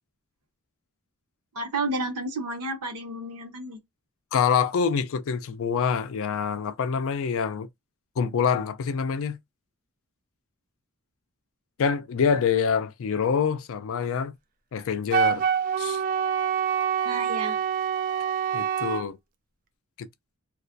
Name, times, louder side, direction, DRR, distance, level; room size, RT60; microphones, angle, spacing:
voice 1, 1.5-3.8 17.0-17.6, right 2 dB, 90° right, 0.8 m, -31 dB
voice 2, 4.3-7.7 8.2-9.4 11.8-14.4 14.7-15.4 15.8-16.0 18.5-19.2 20.0-20.1, left 6 dB, 60° left, 0.4 m, -26 dB
Wind instrument woodwind instrument, 15.1-19.0, right 8 dB, 40° right, 0.3 m, -26 dB
2.3 x 2.1 x 2.5 m
head